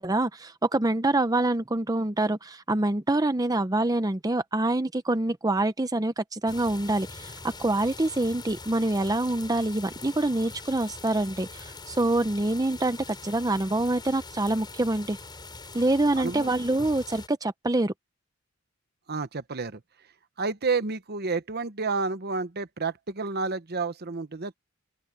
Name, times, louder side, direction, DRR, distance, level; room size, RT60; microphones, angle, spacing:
voice 1, 0.0-15.2 15.7-17.9, right 2 dB, 20° right, 0.8 m, -26 dB
sound 1, 6.5-17.3, left 3 dB, 20° left, 4.9 m, -43 dB
voice 2, 16.1-16.5 19.1-19.8 20.4-24.6, right 4 dB, 50° right, 1.0 m, -30 dB
open air
head